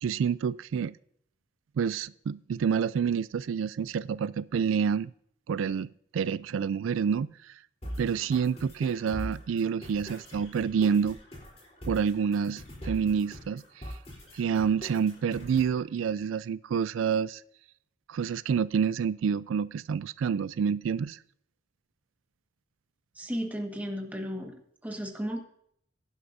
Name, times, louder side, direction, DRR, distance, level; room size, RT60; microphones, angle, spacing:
voice 1, 0.0-1.0 1.8-5.1 5.5-7.6 8.0-11.2 11.9-14.0 14.3-17.4 18.1-21.2, right 7 dB, 90° right, 17 dB, 0.3 m, -28 dB
sound 1, 7.8-15.8, equal, 30° left, 3.6 m, -42 dB
voice 2, 23.1-24.5 24.8-25.4, equal, 10° right, 2 dB, 1.5 m, -34 dB
16.5 x 11.0 x 2.6 m, 0.67 s
head